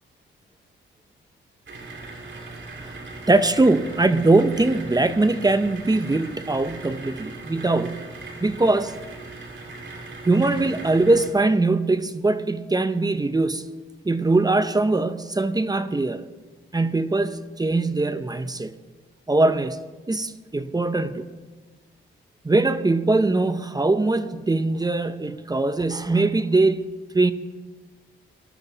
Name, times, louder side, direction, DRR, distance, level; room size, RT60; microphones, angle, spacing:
sound 1, 1.7-11.3, right 3 dB, 65° right, 3.1 m, -39 dB
voice 1, 3.3-8.1 8.4-8.9 10.3-13.7 14.0-16.2 16.7-18.7 19.3-19.8 20.1-21.3 22.4-27.3, right 2 dB, 20° right, 0.8 m, -21 dB
19.5 x 12.5 x 4.0 m
cardioid pair, 80°, 21 cm